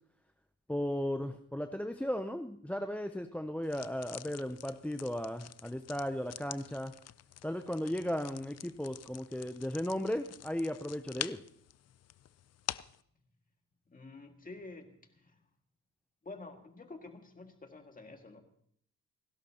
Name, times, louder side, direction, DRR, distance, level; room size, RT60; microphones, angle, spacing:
voice 1, 0.7-6.9 7.4-11.4, left 1 dB, 5° left, 7 dB, 0.6 m, -36 dB
sound 1, 3.6-13.0, left 11 dB, 50° left, 0.5 m, -47 dB
voice 2, 13.9-15.3 16.2-18.4, left 3 dB, 25° left, 4 dB, 1.9 m, -49 dB
29.5 x 11.5 x 2.9 m, 0.64 s
cardioid pair, 120°, 34 cm